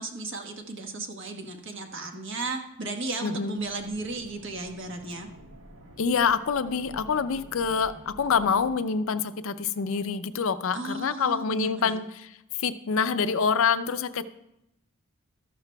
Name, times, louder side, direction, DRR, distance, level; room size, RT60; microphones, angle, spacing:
voice 1, 0.0-5.3 10.7-12.0, right 2 dB, 60° right, 3 dB, 1.3 m, -35 dB
voice 2, 3.2-3.6 6.0-12.3 12.6-14.2, left 6 dB, 65° left, 12 dB, 0.5 m, -26 dB
sound 1, 3.6-8.8, equal, 80° right, 1.5 m, -49 dB
13.5 x 11.5 x 2.3 m, 0.85 s
head